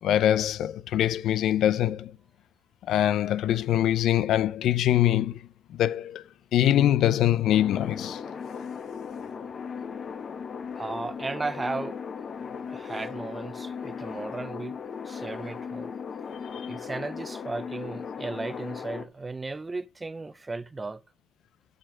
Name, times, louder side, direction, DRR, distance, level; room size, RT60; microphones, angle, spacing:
voice 1, 0.0-2.1 2.9-6.2 6.5-8.2, left 12 dB, 70° left, 0.5 m, -23 dB
sound 1, 7.5-19.0, left 6 dB, 45° left, 1.2 m, -37 dB
voice 2, 10.7-12.0 12.7-15.9 16.7-21.0, right 3 dB, 20° right, 0.7 m, -35 dB
12.0 x 5.1 x 6.2 m
cardioid pair, 90°, 0 cm